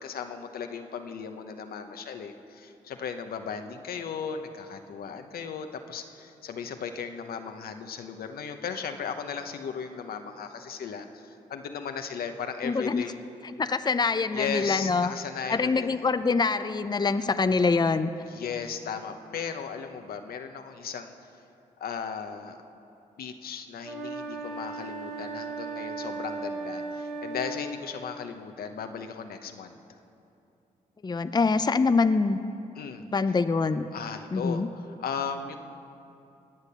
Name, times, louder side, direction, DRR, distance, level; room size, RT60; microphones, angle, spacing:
voice 1, 0.0-13.2 14.3-15.9 18.3-21.1 21.8-22.6 23.2-29.8 32.7-33.0 33.9-35.6, left 6 dB, 75° left, 6 dB, 0.9 m, -36 dB
voice 2, 12.6-13.0 13.6-15.1 15.5-18.1 31.0-32.4 33.1-33.9 34.3-34.7, left 4 dB, 25° left, 10 dB, 0.6 m, -24 dB
sound 1, 23.8-27.8, right 3 dB, 85° right, 2.8 m, -36 dB
20.0 x 8.2 x 6.8 m, 2.8 s
supercardioid pair, 55°, 16 cm